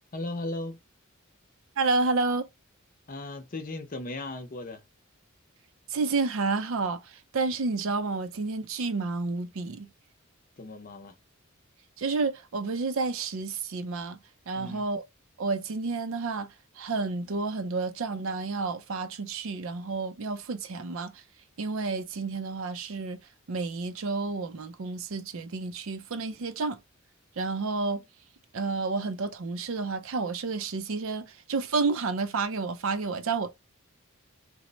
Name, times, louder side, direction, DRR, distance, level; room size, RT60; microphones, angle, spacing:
voice 1, 0.1-0.8 3.1-4.8 10.6-11.1 14.5-14.8, left 2 dB, 40° left, 0.7 m, -36 dB
voice 2, 1.8-2.5 5.9-7.0 7.3-9.9 12.0-14.2 14.5-15.0 15.4-16.5 16.8-21.2 21.6-23.2 23.5-26.8 27.4-28.0 28.5-33.5, right 3 dB, 70° right, 0.5 m, -30 dB
3.1 x 2.0 x 3.9 m
head